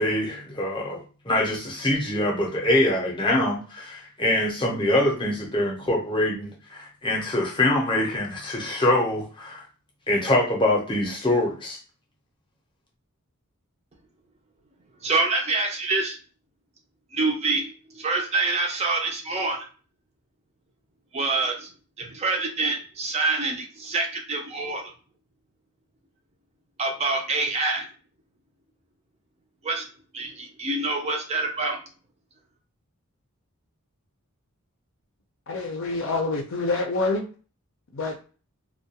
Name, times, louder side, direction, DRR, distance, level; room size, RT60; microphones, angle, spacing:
voice 1, 0.0-9.6 10.1-11.8, left 1 dB, 20° left, -1 dB, 0.6 m, -24 dB
voice 2, 15.0-16.2 17.1-19.7 21.1-21.7 22.0-24.9 26.8-27.9 29.6-29.9 30.1-31.8, right 3 dB, 30° right, 2 dB, 0.5 m, -26 dB
voice 3, 35.5-37.2 37.9-38.2, left 3 dB, 60° left, 3 dB, 0.5 m, -26 dB
2.3 x 2.1 x 2.8 m, 0.37 s
head